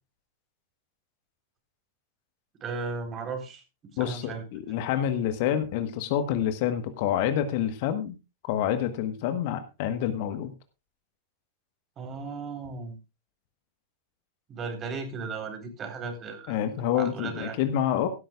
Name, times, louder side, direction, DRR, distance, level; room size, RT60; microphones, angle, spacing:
voice 1, 2.6-3.6 3.9-4.8 12.0-13.0 14.5-16.6 16.9-17.6, right 4 dB, 30° right, 5 dB, 4.1 m, -36 dB
voice 2, 4.0-8.1 8.4-10.5 16.5-18.1, left 10 dB, 50° left, 10 dB, 1.4 m, -27 dB
16.0 x 13.5 x 2.5 m, 0.28 s
figure-of-eight pair, 90°, 0 cm